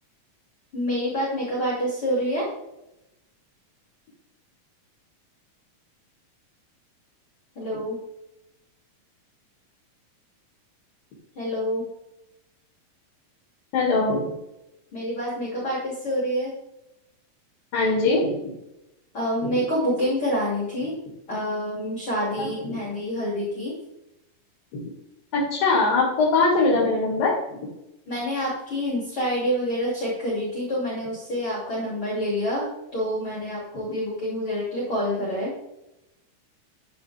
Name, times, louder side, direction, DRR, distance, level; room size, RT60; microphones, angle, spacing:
voice 1, 0.7-2.5 7.6-8.0 11.4-11.9 14.9-16.5 19.1-21.0 21.3-23.8 28.1-35.5, equal, 40° left, -5 dB, 3.7 m, -27 dB
voice 2, 13.7-14.3 17.7-18.5 22.4-22.5 25.3-27.6, left 3 dB, 80° left, -4 dB, 4.2 m, -21 dB
12.0 x 8.7 x 3.5 m, 0.89 s
omnidirectional pair, 3.9 m